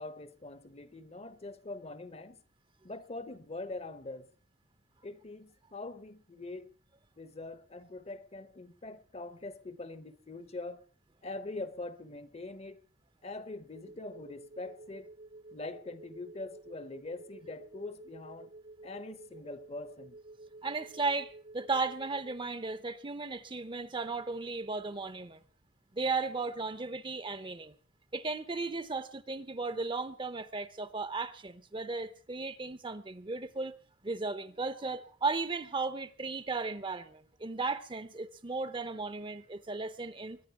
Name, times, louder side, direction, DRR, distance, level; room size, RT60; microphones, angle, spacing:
voice 1, 0.0-2.4 2.8-4.3 5.0-6.7 7.2-10.8 11.2-12.8 13.2-15.1 15.5-18.5 18.8-20.2, left 2 dB, 35° left, 0.9 m, -43 dB
sound 1, 13.7-22.4, right 2 dB, 55° right, 1.1 m, -52 dB
voice 2, 20.6-25.4 25.9-27.7 28.1-33.7 34.0-40.4, right 3 dB, 25° right, 0.7 m, -35 dB
22.5 x 10.0 x 5.8 m
head